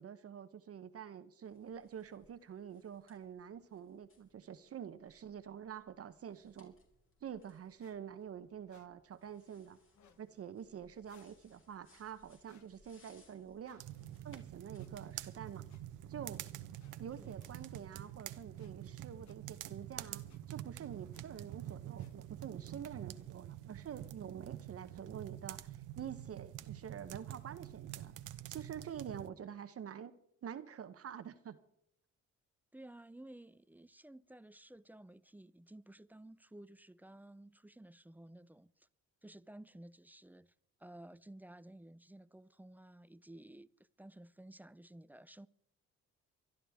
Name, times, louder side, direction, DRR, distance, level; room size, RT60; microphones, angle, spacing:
voice 1, 0.0-6.7 7.2-9.8 10.2-13.8 14.2-15.6 16.1-16.4 17.0-28.1 28.5-30.1 30.4-31.6, right 8 dB, 50° right, 0.8 m, -47 dB
sound 1, 1.4-18.2, left 3 dB, 45° left, 3.9 m, -71 dB
sound 2, 7.8-8.0 8.7-8.9 9.9-10.2 11.0-11.3 12.4-12.7 13.6-13.9 14.8-14.9 15.7-15.8 16.8-17.0 17.4-17.5 18.6-18.7 19.2-19.4 20.3-20.4 21.1-21.3 22.0-22.1, left 8 dB, 70° left, 1.3 m, -67 dB
sound 3, 13.8-29.3, right 13 dB, 85° right, 0.9 m, -47 dB
voice 2, 32.7-38.9 39.2-40.5 40.8-45.5, right 1 dB, 5° right, 0.4 m, -55 dB
24.5 x 12.0 x 3.5 m
cardioid pair, 90°, 30 cm